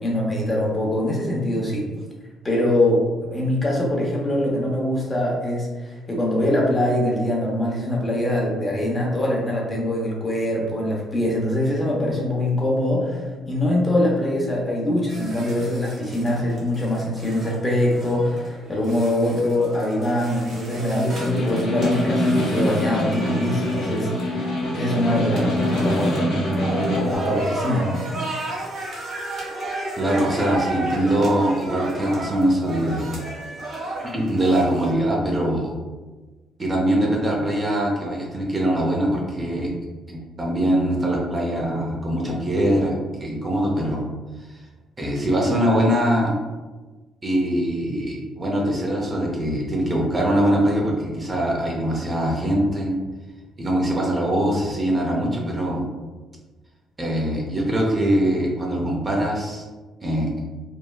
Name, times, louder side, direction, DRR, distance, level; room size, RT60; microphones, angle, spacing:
voice 1, 0.0-1.8 2.4-24.4 24.7-28.0, left 1 dB, 25° left, -3 dB, 0.8 m, -23 dB
sound 1, 15.1-34.9, right 2 dB, 55° right, 1.1 m, -34 dB
Snare drum, 21.0-27.2, left 1 dB, 90° left, 0.8 m, -24 dB
voice 2, 30.0-33.1 34.0-35.8 36.6-39.7 40.1-44.1 44.5-44.6 45.0-46.3 47.2-52.9 53.6-55.8 57.0-59.6 60.0-60.3, right 1 dB, 30° right, -2 dB, 0.6 m, -22 dB
3.1 x 2.2 x 2.2 m, 1.2 s
supercardioid pair, 75°, 0 cm